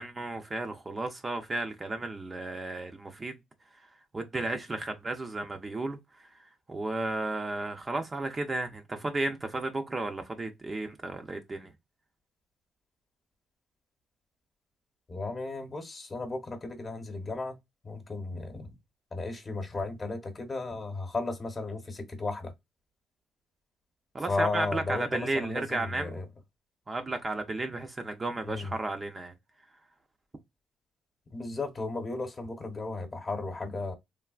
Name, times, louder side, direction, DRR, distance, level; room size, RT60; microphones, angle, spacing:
voice 1, 0.0-3.3 4.1-6.3 6.7-11.7 24.1-26.2 26.9-29.3, right 2 dB, 25° right, 0.5 m, -33 dB
voice 2, 15.1-17.6 17.8-18.8 19.1-22.5 24.3-26.2 28.4-28.7 31.3-33.9, left 3 dB, 30° left, 1.0 m, -35 dB
3.3 x 2.3 x 2.3 m
cardioid pair, 90°, 0 cm